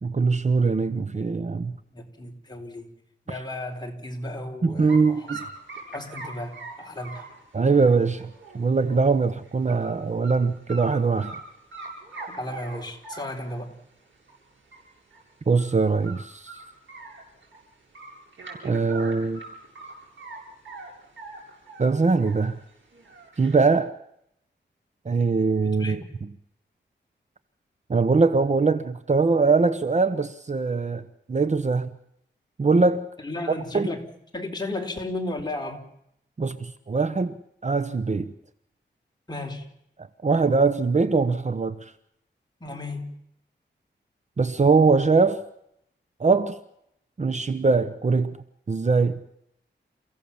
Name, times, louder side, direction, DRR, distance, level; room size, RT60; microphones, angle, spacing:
voice 1, 0.0-1.7 4.6-5.5 7.5-8.3 8.5-11.3 15.5-16.5 18.6-19.4 21.8-22.6 23.4-23.9 25.1-26.0 27.9-31.9 32.6-33.1 33.7-33.9 36.4-37.3 37.6-38.3 40.2-41.8 44.4-45.4 46.2-46.6 47.2-48.4 48.7-49.2, right 4 dB, 35° right, 1.0 m, -22 dB
voice 2, 1.9-2.9 3.3-5.4 5.9-7.2 12.4-13.7 25.6-26.1 33.2-34.1 34.3-35.9 39.3-39.7 42.6-43.1, left 2 dB, 20° left, 4.0 m, -34 dB
sound 1, 4.9-5.0 5.3-9.1 9.4-9.9 10.2-10.3 10.7-11.4 11.7-13.6 14.3-14.4 14.7-14.8 15.1-15.2 15.6-15.8 16.0-17.6 17.9-20.4 20.6-22.5 22.9-23.6, right 3 dB, 90° right, 7.7 m, -41 dB
29.5 x 16.0 x 7.1 m
wide cardioid pair, 120°, 19 cm